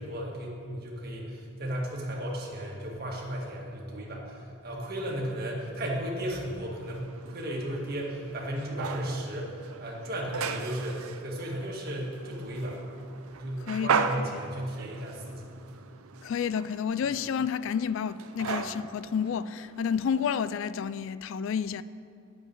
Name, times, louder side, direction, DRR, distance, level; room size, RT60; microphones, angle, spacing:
voice 1, 0.0-12.8 13.1-15.5, equal, 45° right, 1.9 m, -35 dB
sound 1, 6.8-20.6, right 5 dB, 85° right, 0.6 m, -37 dB
voice 2, 13.6-14.1 16.2-21.8, left 7 dB, 65° left, 0.3 m, -30 dB
9.6 x 7.3 x 8.2 m
head